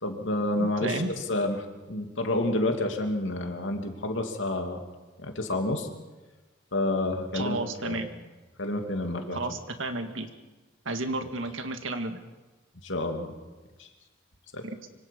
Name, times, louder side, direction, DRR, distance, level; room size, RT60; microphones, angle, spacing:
voice 1, 0.0-4.8 5.2-5.9 6.7-7.6 7.8-8.0 8.6-9.4 12.8-13.3 13.8-13.9 14.5-14.6, left 2 dB, 75° left, 4 dB, 2.7 m, -29 dB
voice 2, 0.6-1.1 7.3-8.1 9.3-10.3 10.9-12.2 14.6-14.8, right 2 dB, 90° right, 7 dB, 2.0 m, -32 dB
25.0 x 25.0 x 5.4 m, 1.2 s
head